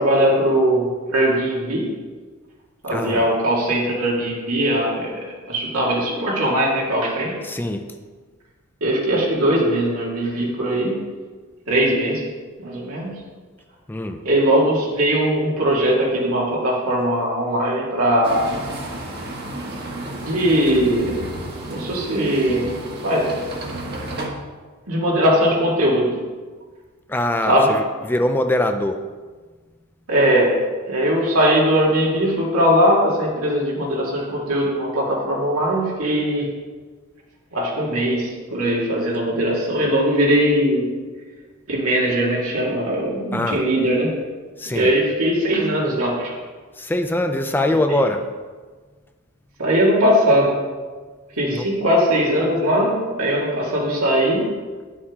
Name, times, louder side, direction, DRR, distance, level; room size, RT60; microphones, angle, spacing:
voice 1, 0.0-1.9 2.8-5.2 5.5-7.4 8.8-11.0 11.7-12.2 12.6-13.1 14.2-18.5 20.2-21.3 21.7-22.7 23.0-23.3 24.9-26.1 27.5-27.7 30.1-30.5 30.9-36.5 37.5-40.9 41.7-44.1 44.7-46.3 48.0-48.1 49.6-50.5 51.4-54.5, equal, 85° right, -4 dB, 2.0 m, -20 dB
voice 2, 2.9-3.3 7.4-7.9 13.9-14.2 27.1-29.0 43.3-43.6 44.6-44.9 46.8-48.3 51.5-51.7, left 1 dB, 10° left, 6 dB, 0.4 m, -23 dB
sound 1, 18.2-24.3, right 1 dB, 50° right, 1.4 m, -32 dB
10.5 x 7.1 x 3.6 m, 1.4 s
head